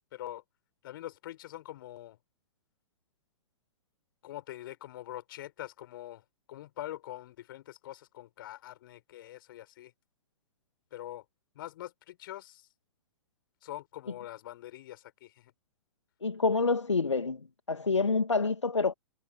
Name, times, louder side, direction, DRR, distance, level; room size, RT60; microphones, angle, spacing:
voice 1, 0.1-0.4 0.8-2.2 4.2-9.9 10.9-11.2 11.5-12.7 13.6-15.5, left 14 dB, 50° left, 5.8 m, -44 dB
voice 2, 16.2-17.4 17.7-18.9, left 4 dB, 75° left, 1.7 m, -27 dB
figure-of-eight pair, 105°, 15 cm